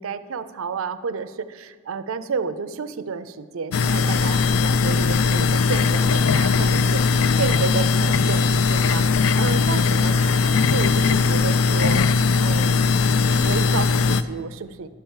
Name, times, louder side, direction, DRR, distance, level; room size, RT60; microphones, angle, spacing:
voice 1, 0.0-12.1 12.4-12.8 13.4-14.9, right 5 dB, 70° right, 11 dB, 0.4 m, -31 dB
sound 1, 3.7-14.2, left 4 dB, 70° left, 0.4 m, -19 dB
10.5 x 4.5 x 7.2 m, 1.5 s
head